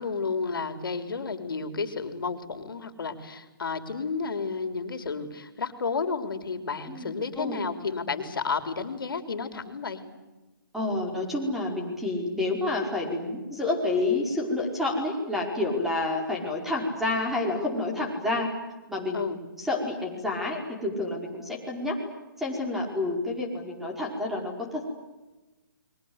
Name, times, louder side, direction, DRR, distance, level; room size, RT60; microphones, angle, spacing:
voice 1, 0.0-10.0 19.1-19.4, left 4 dB, 75° left, 8 dB, 3.6 m, -32 dB
voice 2, 6.9-7.6 10.7-18.5 18.9-19.3 19.6-21.9 22.4-24.8, left 2 dB, ahead, 1 dB, 5.0 m, -29 dB
30.0 x 23.0 x 8.1 m, 1.1 s
hypercardioid pair, 150°, 12 cm